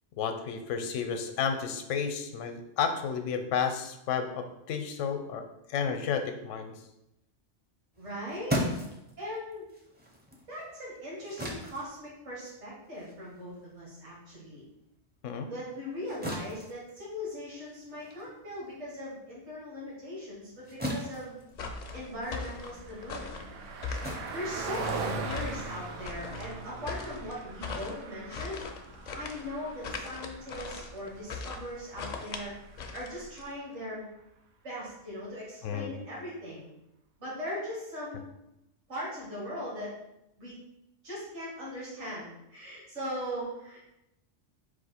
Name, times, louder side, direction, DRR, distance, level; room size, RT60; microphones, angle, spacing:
voice 1, 0.2-6.7 15.2-15.5 35.6-35.9, left 6 dB, 85° left, 7 dB, 0.9 m, -32 dB
sound 1, 7.9-14.7 15.1-25.3, equal, 15° right, 0.4 m, -39 dB
voice 2, 8.0-8.6 9.2-9.7 10.5-14.7 15.5-21.4 21.9-23.5 24.3-28.6 29.1-32.5 32.9-34.1 34.6-36.7 37.2-38.3 38.9-39.9 40.4-40.6 41.0-43.9, equal, 65° right, -6 dB, 1.9 m, -39 dB
sound 2, 21.5-33.5, left 4 dB, 60° left, 0.4 m, -40 dB
Car passing by, 22.0-33.6, right 4 dB, 80° right, 1.0 m, -41 dB
4.5 x 2.5 x 4.3 m, 0.86 s
omnidirectional pair, 1.3 m